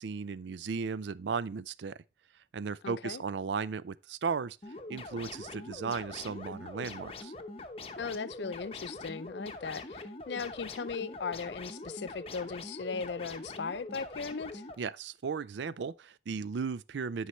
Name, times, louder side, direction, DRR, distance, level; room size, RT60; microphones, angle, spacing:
voice 1, 0.0-2.0 2.5-4.6 4.9-7.3 14.8-17.3, right 5 dB, 80° right, 0.4 m, -36 dB
voice 2, 2.8-3.2 8.0-14.7, left 5 dB, 75° left, 0.5 m, -38 dB
sound 1, 4.6-14.8, left 2 dB, 30° left, 0.8 m, -44 dB
11.5 x 5.6 x 3.1 m
head